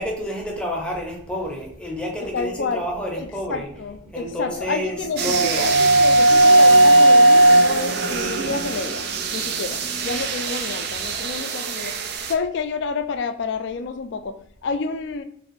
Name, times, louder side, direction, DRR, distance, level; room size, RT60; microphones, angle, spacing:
voice 1, 0.0-3.7 4.1-5.7, equal, 5° left, -1 dB, 0.6 m, -29 dB
voice 2, 2.3-2.8 3.5-9.0 9.3-11.9 12.3-14.3 14.6-15.2, left 4 dB, 60° left, 9 dB, 0.3 m, -29 dB
sound 1, 4.3-10.2, right 1 dB, 85° right, 0.8 m, -16 dB
sound 2, 5.2-12.3, right 7 dB, 50° right, 0.4 m, -28 dB
2.6 x 2.3 x 3.7 m, 0.63 s
head